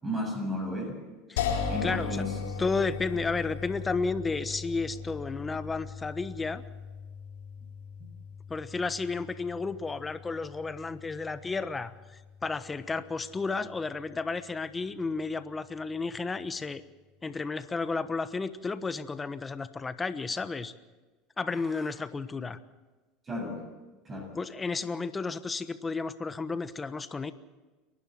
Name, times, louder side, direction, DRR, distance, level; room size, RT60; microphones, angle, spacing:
voice 1, 0.0-1.0 1.7-2.4 21.5-21.9 23.2-23.6 24.0-24.3, left 1 dB, 25° right, 2 dB, 7.3 m, -34 dB
voice 2, 1.3-2.2 2.6-6.6 8.5-11.9 12.4-16.8 17.2-20.7 21.4-22.6 24.3-27.3, left 4 dB, 20° left, 13 dB, 1.2 m, -32 dB
sound 1, 1.4-14.4, left 6 dB, 85° left, 4.4 m, -39 dB
30.0 x 11.5 x 7.7 m, 1.2 s
supercardioid pair, 105°, 0 cm